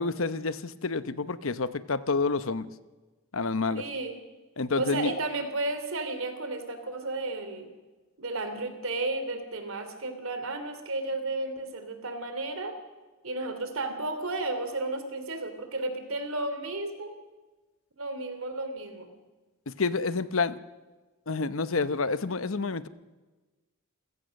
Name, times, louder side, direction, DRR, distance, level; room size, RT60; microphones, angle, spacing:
voice 1, 0.0-2.7 3.3-3.8 4.6-5.1 19.7-20.6 21.3-22.9, left 4 dB, 70° left, 14 dB, 0.9 m, -28 dB
voice 2, 3.7-4.2 4.7-7.7 8.2-12.8 13.2-17.2 18.0-19.1, right 2 dB, 75° right, 8 dB, 3.2 m, -33 dB
28.5 x 16.0 x 6.6 m, 1.2 s
head